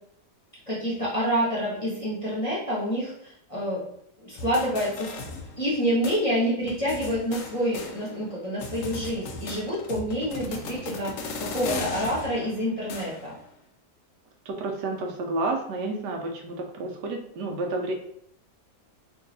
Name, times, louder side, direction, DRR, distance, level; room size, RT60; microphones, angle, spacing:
voice 1, 0.7-3.8 4.2-5.1 5.6-13.3, equal, 25° left, -7 dB, 1.0 m, -27 dB
sound 1, 4.4-5.8 6.0-6.2 6.7-8.3 8.6-13.4, left 3 dB, 65° left, 0.8 m, -37 dB
voice 2, 14.5-17.9, right 2 dB, 85° right, 2 dB, 1.2 m, -30 dB
3.1 x 2.7 x 3.9 m, 0.69 s
omnidirectional pair, 1.8 m